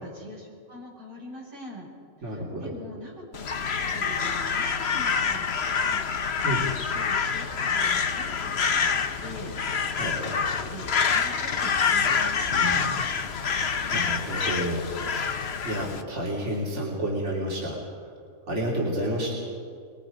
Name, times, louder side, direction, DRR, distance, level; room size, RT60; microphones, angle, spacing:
voice 1, 0.0-1.9 2.2-12.4, equal, 85° right, -5 dB, 6.4 m, -44 dB
voice 2, 2.2-2.7 6.4-6.7 9.9-10.4 12.5-13.0 13.3-15.3 15.6-17.8 18.5-19.3, right 1 dB, 50° right, -4 dB, 3.4 m, -31 dB
Crow, 3.3-16.0, left 6 dB, 50° left, 1.1 m, -26 dB
24.5 x 22.0 x 5.2 m, 2.2 s
omnidirectional pair, 1.5 m